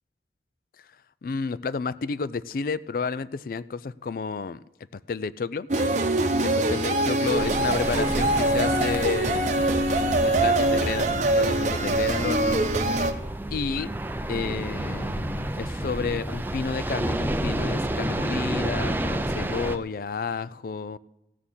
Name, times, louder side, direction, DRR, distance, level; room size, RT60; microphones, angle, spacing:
voice 1, 1.2-4.6 4.9-5.7 6.4-9.7 10.2-12.6 13.5-13.9 14.3-21.0, left 5 dB, 50° left, 0.4 m, -31 dB
sound 1, 5.7-13.1, right 2 dB, 40° right, 0.9 m, -23 dB
sound 2, 7.3-19.8, right 1 dB, 10° right, 0.5 m, -30 dB
16.0 x 6.5 x 7.2 m
head